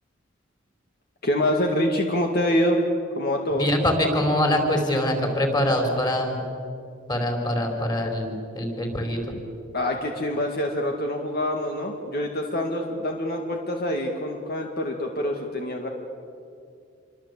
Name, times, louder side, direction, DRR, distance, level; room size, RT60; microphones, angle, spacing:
voice 1, 1.2-2.8 3.2-3.7 9.7-15.9, left 1 dB, 55° left, 2 dB, 2.3 m, -25 dB
voice 2, 3.6-6.4 7.1-9.2, left 1 dB, 20° left, 3 dB, 4.9 m, -24 dB
27.5 x 24.5 x 8.4 m, 2.4 s
head